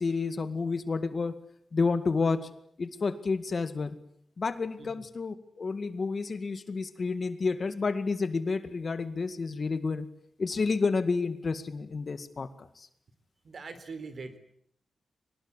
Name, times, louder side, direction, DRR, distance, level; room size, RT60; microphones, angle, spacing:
voice 1, 0.0-1.3 1.7-2.4 2.8-3.9 4.4-10.1 10.4-12.9, left 4 dB, 45° left, 11 dB, 2.1 m, -30 dB
voice 2, 13.4-14.4, right 4 dB, 50° right, 11 dB, 3.9 m, -41 dB
24.0 x 20.0 x 10.0 m, 0.69 s
wide cardioid pair, 120°, 0 cm